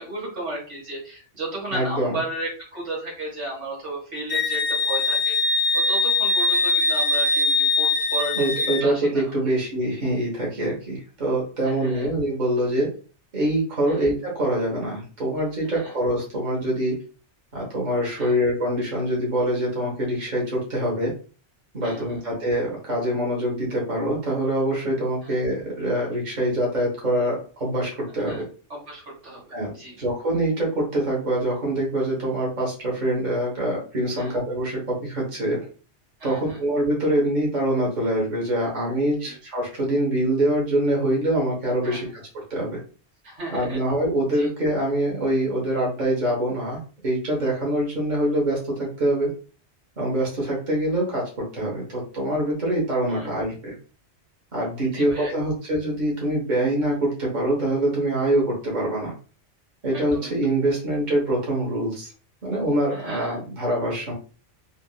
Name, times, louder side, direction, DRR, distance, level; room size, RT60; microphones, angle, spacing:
voice 1, 0.0-9.2 11.6-12.1 13.9-14.1 15.6-15.9 18.2-18.3 21.8-22.2 25.2-25.3 28.1-28.4 28.7-29.9 34.1-34.4 36.2-36.6 39.2-39.3 41.8-42.1 43.2-43.8 44.3-44.5 53.1-53.3 54.9-55.6 59.9-60.3 62.9-63.4, right 1 dB, 75° right, -3 dB, 1.7 m, -35 dB
voice 2, 1.7-2.2 8.3-12.9 13.3-17.0 17.5-21.1 21.7-28.5 29.5-29.7 30.0-35.6 36.2-42.8 43.5-49.3 50.0-53.7 54.5-59.1 59.8-62.1 62.4-64.1, right 1 dB, 40° right, -3 dB, 1.2 m, -24 dB
Wind instrument woodwind instrument, 4.3-8.9, left 3 dB, 55° left, 0.4 m, -22 dB
3.6 x 2.5 x 2.2 m, 0.38 s
omnidirectional pair, 1.2 m